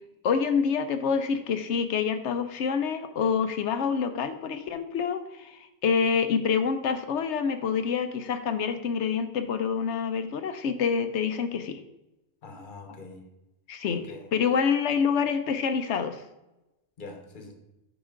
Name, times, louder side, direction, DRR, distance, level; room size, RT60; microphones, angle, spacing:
voice 1, 0.2-11.8 13.7-14.0 14.3-16.2, left 6 dB, 75° left, 9 dB, 1.0 m, -27 dB
voice 2, 12.4-13.3 13.9-14.3 17.0-17.5, left 3 dB, 45° left, 5 dB, 1.1 m, -44 dB
10.0 x 4.0 x 3.7 m, 0.97 s
omnidirectional pair, 1.2 m